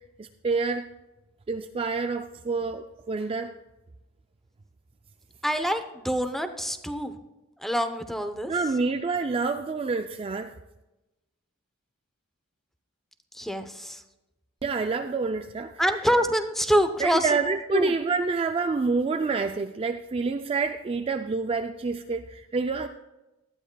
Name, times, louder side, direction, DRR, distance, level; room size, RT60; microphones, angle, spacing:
voice 1, 0.2-0.9 1.5-3.5 8.5-10.5 14.6-15.7 17.0-22.9, right 4 dB, 25° right, 7 dB, 0.3 m, -27 dB
voice 2, 5.4-7.1 7.6-8.5 13.3-14.0 15.8-17.3 17.7-17.9, equal, ahead, 9 dB, 0.7 m, -26 dB
18.0 x 12.0 x 2.3 m, 1.0 s
head